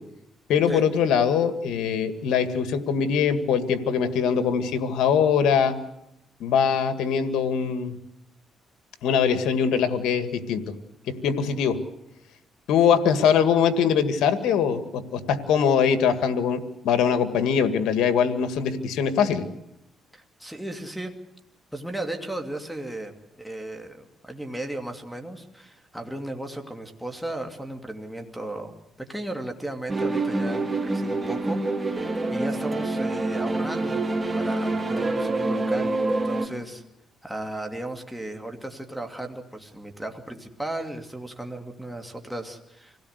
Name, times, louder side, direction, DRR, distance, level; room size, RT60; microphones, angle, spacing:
voice 1, 0.5-5.8 6.4-8.0 9.0-10.6 11.2-11.8 12.7-16.6 16.8-19.4, left 7 dB, 85° left, 10 dB, 1.9 m, -22 dB
voice 2, 20.1-21.1 21.7-28.7 29.1-36.8 37.2-43.0, right 1 dB, ahead, 3 dB, 2.5 m, -35 dB
sound 1, 29.9-36.5, right 2 dB, 20° right, 4.2 m, -26 dB
25.5 x 17.0 x 8.1 m, 0.84 s
cardioid pair, 90°, 0 cm